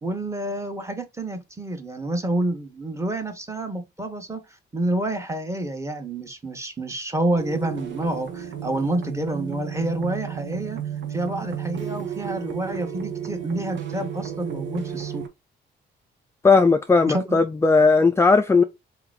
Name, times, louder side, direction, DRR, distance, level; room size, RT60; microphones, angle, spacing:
voice 1, 0.0-4.4 4.7-10.8 11.1-15.2 17.1-17.4, right 1 dB, 15° right, 1.1 m, -28 dB
sound 1, 7.4-15.3, right 9 dB, 75° right, 1.2 m, -33 dB
voice 2, 16.4-18.6, left 4 dB, 15° left, 0.4 m, -17 dB
4.3 x 2.9 x 3.8 m
cardioid pair, 115°, 19 cm